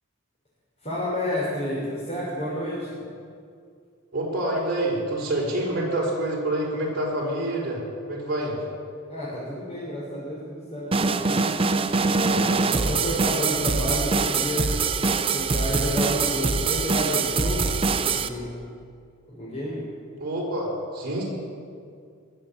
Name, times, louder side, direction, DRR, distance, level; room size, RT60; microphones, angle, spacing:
voice 1, 0.8-3.0 9.1-11.5 12.1-14.7 15.3-18.5 19.3-19.8, left 1 dB, 30° left, -8 dB, 3.5 m, -30 dB
voice 2, 4.1-7.8 8.1-8.6 20.2-21.2, right 1 dB, 50° right, -4 dB, 4.3 m, -27 dB
sound 1, 10.9-18.3, right 4 dB, 25° right, 0.5 m, -23 dB
20.0 x 7.2 x 7.2 m, 2.3 s
head